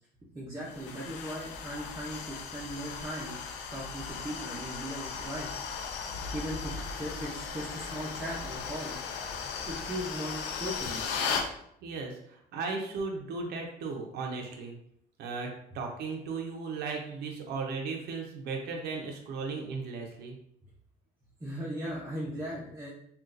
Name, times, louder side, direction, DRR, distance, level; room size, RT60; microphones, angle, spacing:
voice 1, 0.3-3.4 3.7-5.5 6.3-9.0 9.7-11.0 21.4-22.9, equal, 15° right, -7 dB, 0.7 m, -38 dB
sound 1, 0.6-11.5, left 5 dB, 90° left, 0.5 m, -37 dB
voice 2, 11.8-14.7 15.2-20.3, right 4 dB, 75° right, 1 dB, 0.6 m, -36 dB
3.7 x 2.4 x 2.5 m, 0.71 s
cardioid pair, 110°, 17 cm